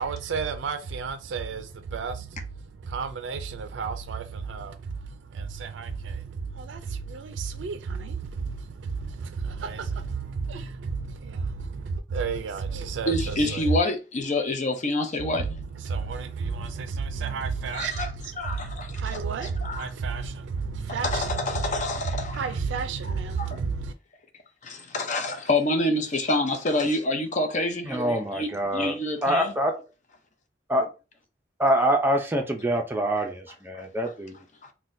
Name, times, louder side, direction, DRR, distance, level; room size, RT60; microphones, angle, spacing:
voice 1, 0.0-13.8 15.2-23.9, right 5 dB, 80° right, 0.4 m, -32 dB
voice 2, 13.1-15.5 17.7-17.9 18.4-19.0 19.6-19.8 21.0-22.4 23.4-23.6 24.6-29.5 33.7-33.8 34.6-34.7, left 2 dB, 40° left, 0.6 m, -27 dB
voice 3, 27.8-28.9 29.2-29.8 30.7-30.9 31.6-34.4, right 1 dB, 10° right, 0.5 m, -25 dB
3.9 x 2.2 x 2.6 m
head